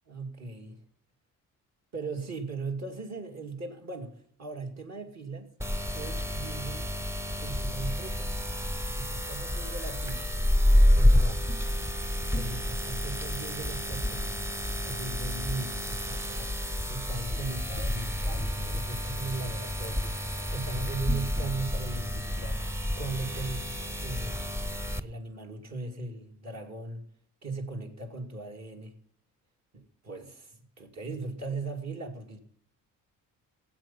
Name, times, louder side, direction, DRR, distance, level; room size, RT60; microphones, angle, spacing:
voice 1, 0.1-0.8 1.9-5.5 5.9-6.9 7.4-8.3 8.9-10.3 10.9-11.6 12.3-16.5 16.9-20.2 20.5-22.7 23.0-23.7 24.0-24.6 25.0-27.0 27.4-28.9 29.7-32.4, right 3 dB, 50° right, 2.7 m, -38 dB
sound 1, 5.6-25.0, left 1 dB, 10° right, 0.6 m, -29 dB
18.0 x 8.1 x 5.7 m
cardioid pair, 110°, 34 cm